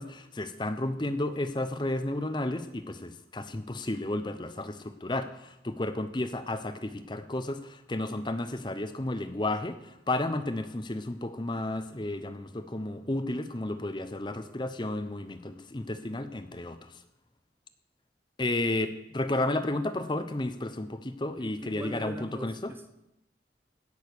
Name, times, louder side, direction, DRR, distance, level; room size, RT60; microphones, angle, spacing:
voice 1, 0.0-17.0 18.4-22.7, left 2 dB, 25° left, 10 dB, 0.8 m, -32 dB
voice 2, 21.4-22.9, right 1 dB, 15° right, 8 dB, 0.6 m, -41 dB
17.0 x 6.5 x 6.7 m, 0.87 s
head